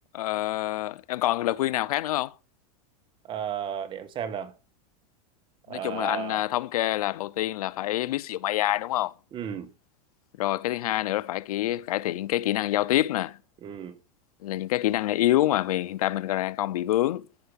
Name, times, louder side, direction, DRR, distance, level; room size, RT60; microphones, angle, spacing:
voice 1, 0.1-2.3 5.7-9.1 10.4-13.4 14.4-17.3, left 15 dB, 85° left, 0.7 m, -26 dB
voice 2, 3.3-4.5 5.7-6.4 9.3-9.7 13.6-14.0, right 8 dB, 25° right, 1.5 m, -34 dB
14.5 x 5.7 x 5.3 m
supercardioid pair, 150°, 18 cm